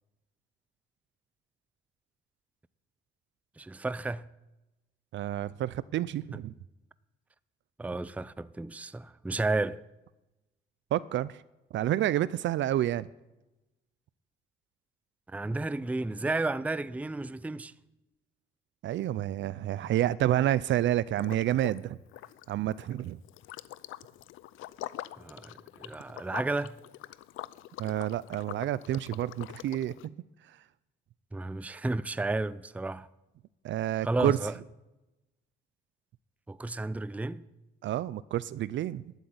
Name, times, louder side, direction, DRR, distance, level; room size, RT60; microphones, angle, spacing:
voice 1, 3.6-4.2 7.8-9.8 15.3-17.7 25.2-26.8 31.3-33.1 34.0-34.5 36.5-37.4, right 2 dB, 5° right, 0.5 m, -32 dB
voice 2, 5.1-6.5 10.9-11.4 11.7-13.1 18.8-22.0 22.5-23.2 27.8-30.1 33.6-34.4 37.8-39.1, right 13 dB, 70° right, 0.5 m, -29 dB
Liquid, 21.2-21.8 22.1-30.1, left 15 dB, 90° left, 0.6 m, -44 dB
12.5 x 8.2 x 9.5 m
cardioid pair, 90°, 20 cm